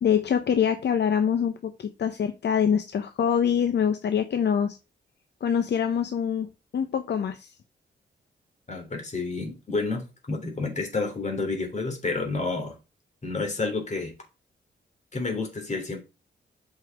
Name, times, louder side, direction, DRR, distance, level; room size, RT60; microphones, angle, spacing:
voice 1, 0.0-4.8 5.4-6.5 6.7-7.5, left 8 dB, 70° left, 0.8 m, -24 dB
voice 2, 8.7-12.8 13.2-14.1 15.1-16.0, left 3 dB, 40° left, 3.0 m, -30 dB
7.9 x 5.6 x 3.5 m
cardioid pair, 85°, 19 cm